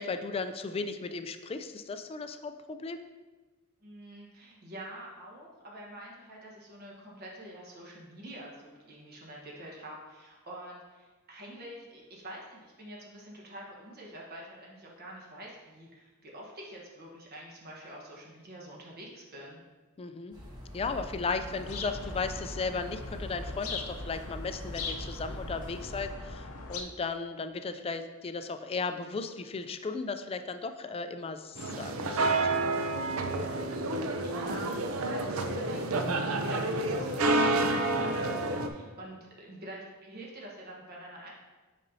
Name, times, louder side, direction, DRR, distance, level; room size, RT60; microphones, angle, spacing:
voice 1, 0.0-3.0 20.0-20.4 20.7-32.4, left 4 dB, 25° left, 9 dB, 0.3 m, -36 dB
voice 2, 3.8-19.6 33.6-41.3, right 1 dB, 45° right, -3 dB, 1.2 m, -46 dB
sound 1, 20.3-26.1, equal, 20° right, 1.4 m, -43 dB
sound 2, 21.5-26.8, left 3 dB, 75° left, 0.7 m, -41 dB
sound 3, 31.6-38.7, right 2 dB, 70° right, 0.6 m, -29 dB
8.4 x 5.2 x 2.7 m, 1.3 s
head